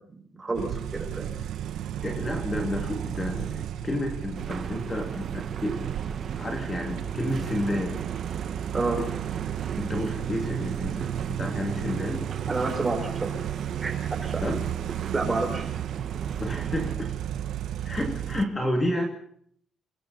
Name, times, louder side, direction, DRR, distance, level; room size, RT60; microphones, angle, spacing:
voice 1, 0.0-1.4 8.7-9.0 12.5-13.3 13.8-14.0 14.2-14.5 15.1-15.7, right 3 dB, 20° right, 3 dB, 5.9 m, -29 dB
sound 1, 0.5-18.4, right 10 dB, 85° right, 1.2 m, -33 dB
voice 2, 2.0-5.9 6.4-8.0 9.8-12.3 14.4-14.6 16.4-17.1 17.8-19.1, left 1 dB, 15° left, 2 dB, 2.9 m, -30 dB
sound 2, 4.3-17.0, right 6 dB, 45° right, 1.8 m, -38 dB
28.5 x 23.0 x 4.3 m, 0.63 s
cardioid pair, 165°, 0 cm